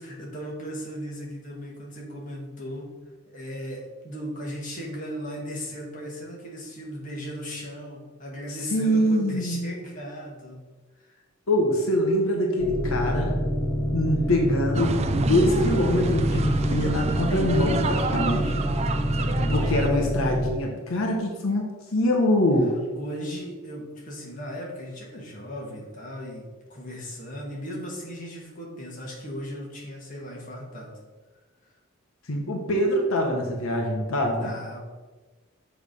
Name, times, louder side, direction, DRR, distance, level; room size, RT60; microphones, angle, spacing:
voice 1, 0.0-2.9 3.3-10.6 11.0-11.2 19.1-19.5 22.9-31.0 31.6-31.8 34.4-34.8, equal, 40° left, -2 dB, 1.5 m, -37 dB
voice 2, 8.7-9.7 11.5-13.4 13.9-18.7 19.4-22.7 32.3-34.5, left 1 dB, 85° left, 0 dB, 0.9 m, -24 dB
sound 1, 12.6-20.5, equal, 10° left, 0.7 m, -27 dB
sound 2, 14.7-19.9, right 3 dB, 30° right, 0.4 m, -28 dB
6.7 x 3.4 x 5.2 m, 1.3 s
head